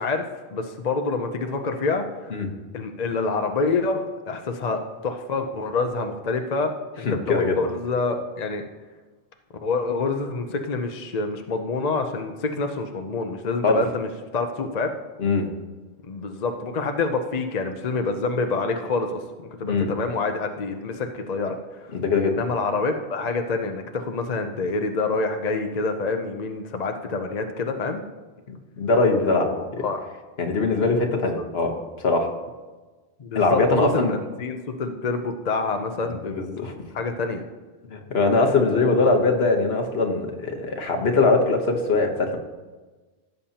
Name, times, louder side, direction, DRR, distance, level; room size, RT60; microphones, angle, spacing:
voice 1, 0.0-2.4 2.7-8.6 9.6-14.9 16.1-19.2 19.6-21.6 22.2-28.0 29.2-30.0 33.2-33.6 33.9-36.4 36.9-37.4, left 3 dB, 45° left, 5 dB, 0.7 m, -27 dB
voice 2, 7.0-7.6 13.6-13.8 15.2-15.5 19.7-19.9 21.9-22.3 28.8-29.5 29.7-29.8 30.4-32.3 33.3-34.1 36.1-36.7 37.9-42.4, left 3 dB, 65° left, 2 dB, 1.4 m, -21 dB
16.0 x 7.1 x 2.9 m, 1.3 s
omnidirectional pair, 1.1 m